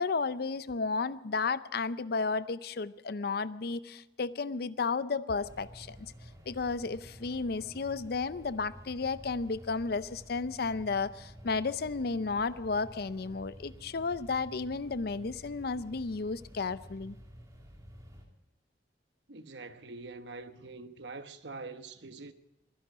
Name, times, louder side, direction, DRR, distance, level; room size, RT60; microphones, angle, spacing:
voice 1, 0.0-6.1 6.5-17.1, left 4 dB, 60° left, 0.6 m, -33 dB
sound 1, 5.4-18.3, equal, 20° right, 2.5 m, -51 dB
voice 2, 19.3-22.3, right 3 dB, 80° right, 1.1 m, -44 dB
22.5 x 11.0 x 5.0 m
head